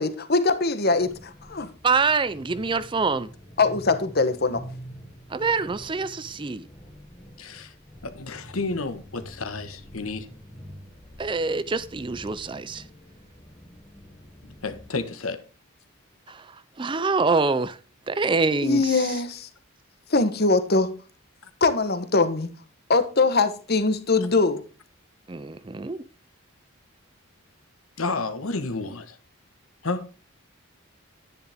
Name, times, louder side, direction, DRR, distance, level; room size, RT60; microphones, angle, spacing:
voice 1, 0.0-1.7 3.6-4.6 18.6-19.5 20.1-20.9 21.6-22.5 22.9-24.6, left 3 dB, 50° left, 1.2 m, -22 dB
sound 1, 0.9-14.9, equal, 25° left, 1.9 m, -46 dB
voice 2, 1.8-3.3 5.3-6.7 11.2-12.8 16.3-17.8 18.1-18.8 25.3-26.0, right 4 dB, 25° right, 0.4 m, -25 dB
voice 3, 7.4-7.7 8.0-10.3 14.4-15.4 28.0-29.2 29.8-30.0, left 3 dB, 85° left, 1.4 m, -31 dB
10.5 x 10.0 x 3.6 m
head